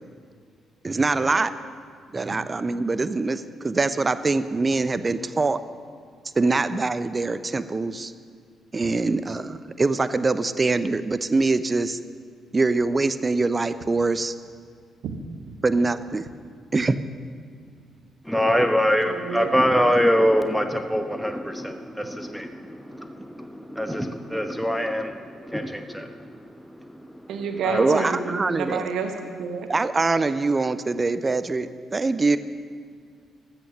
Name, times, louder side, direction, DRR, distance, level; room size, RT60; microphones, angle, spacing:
voice 1, 0.8-1.5 2.1-5.6 6.4-8.1 8.7-12.0 12.5-14.3 15.6-16.2 16.7-17.0 27.8-28.9 29.7-32.4, right 3 dB, 30° right, 13 dB, 0.8 m, -23 dB
voice 2, 15.0-15.6 19.1-19.6 27.3-29.7, right 5 dB, 60° right, 6 dB, 1.3 m, -30 dB
voice 3, 18.2-28.1, equal, ahead, 6 dB, 1.2 m, -25 dB
15.0 x 12.5 x 6.4 m, 2.2 s
figure-of-eight pair, 40°, 0 cm